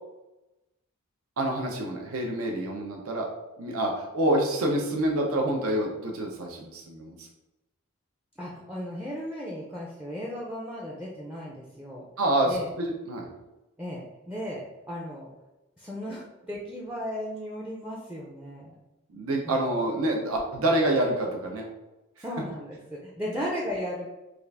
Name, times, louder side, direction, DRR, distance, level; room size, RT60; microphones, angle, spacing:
voice 1, 1.4-3.3 3.6-7.3 12.2-13.3 19.1-21.7, right 1 dB, 75° right, 1 dB, 0.6 m, -27 dB
voice 2, 8.4-12.1 12.5-12.7 13.8-15.3 15.8-18.7 19.4-19.6 22.2-24.1, equal, 5° right, -4 dB, 0.4 m, -36 dB
3.6 x 2.4 x 3.3 m, 0.99 s
head